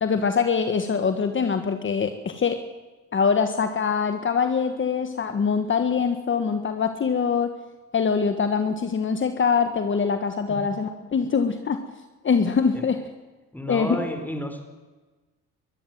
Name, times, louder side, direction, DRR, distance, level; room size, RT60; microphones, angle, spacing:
voice 1, 0.0-2.6 3.1-7.5 7.9-11.8 12.2-13.0 13.7-14.0, left 6 dB, 40° left, 8 dB, 1.6 m, -23 dB
voice 2, 13.5-14.6, left 1 dB, 5° left, 6 dB, 4.5 m, -31 dB
22.5 x 14.0 x 9.3 m, 1.2 s
cardioid pair, 90°, 30 cm